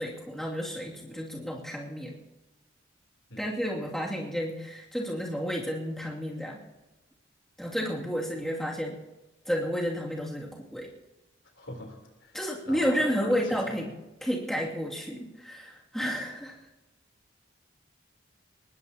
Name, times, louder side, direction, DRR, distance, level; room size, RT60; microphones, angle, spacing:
voice 1, 0.0-2.2 3.4-6.6 7.6-9.0 9.5-10.9 12.3-13.9 14.2-16.6, equal, ahead, -4 dB, 2.6 m, -31 dB
voice 2, 11.6-12.4 12.7-13.7, left 1 dB, 75° left, 2 dB, 3.7 m, -44 dB
22.5 x 20.0 x 3.0 m, 1.0 s
head